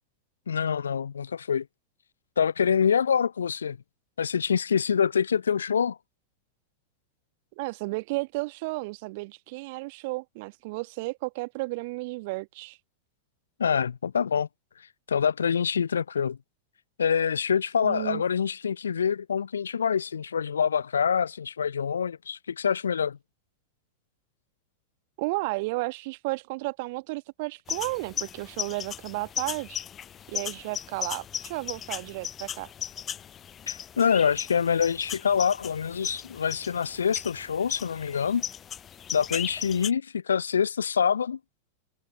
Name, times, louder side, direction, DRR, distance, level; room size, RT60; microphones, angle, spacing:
voice 1, 0.5-1.7 2.4-3.8 4.2-6.0 13.6-14.5 15.1-16.4 17.0-23.2 33.7-38.4 39.1-41.4, left 7 dB, 70° left, 0.3 m, -26 dB
voice 2, 7.6-12.8 17.8-18.2 25.2-29.8 30.3-32.7, right 25 dB, 50° right, 1.5 m, -33 dB
sound 1, 27.7-39.9, left 9 dB, 25° left, 0.7 m, -37 dB
figure-of-eight pair, 90°, 0 cm